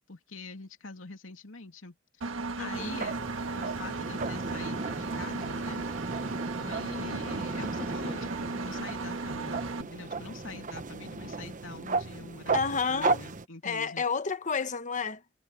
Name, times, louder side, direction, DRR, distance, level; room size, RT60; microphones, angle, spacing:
voice 1, 0.0-1.9 2.6-3.2 3.5-5.8 6.6-14.0, left 3 dB, 85° left, 2.9 m, -44 dB
Engine, 2.2-9.8, right 3 dB, 80° right, 1.5 m, -36 dB
voice 2, 2.6-3.0 12.5-13.2 13.6-15.2, left 5 dB, 40° left, 1.2 m, -30 dB
sound 1, 2.7-13.4, right 3 dB, 40° right, 1.0 m, -35 dB
head